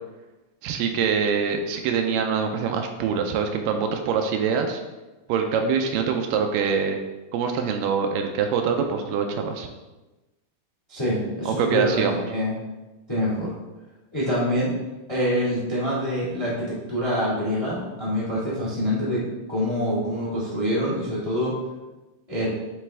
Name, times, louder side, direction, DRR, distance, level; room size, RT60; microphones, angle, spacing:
voice 1, 0.6-4.8 5.3-7.0 7.3-9.7 11.5-12.2, right 6 dB, 80° right, 4 dB, 2.2 m, -24 dB
voice 2, 10.9-12.5 13.1-13.5 14.1-14.7 15.1-19.2 19.5-21.5 22.3-22.5, equal, 20° left, -7 dB, 0.7 m, -25 dB
9.4 x 3.3 x 3.3 m, 1.1 s
omnidirectional pair, 4.0 m